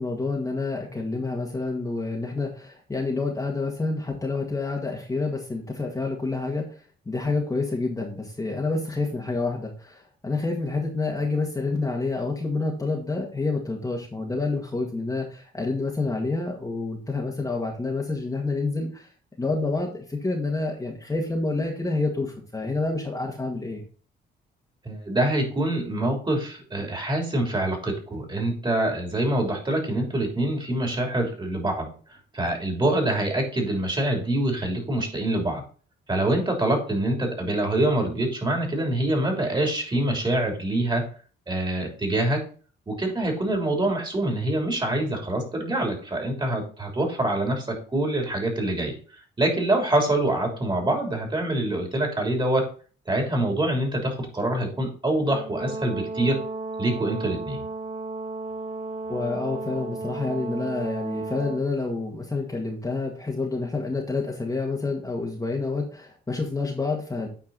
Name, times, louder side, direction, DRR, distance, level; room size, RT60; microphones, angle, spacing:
voice 1, 0.0-19.1 19.4-23.8 59.1-67.3, left 3 dB, 15° left, 0 dB, 1.8 m, -28 dB
voice 2, 24.8-31.9 32.3-35.6 36.1-41.0 41.5-42.4 42.9-48.9 49.4-52.6 53.1-56.4 56.8-57.7, right 1 dB, 25° right, 1 dB, 3.2 m, -25 dB
Brass instrument, 55.3-61.6, right 3 dB, 40° right, 0.9 m, -34 dB
9.1 x 4.6 x 4.0 m, 0.40 s
cardioid pair, 90°, 20 cm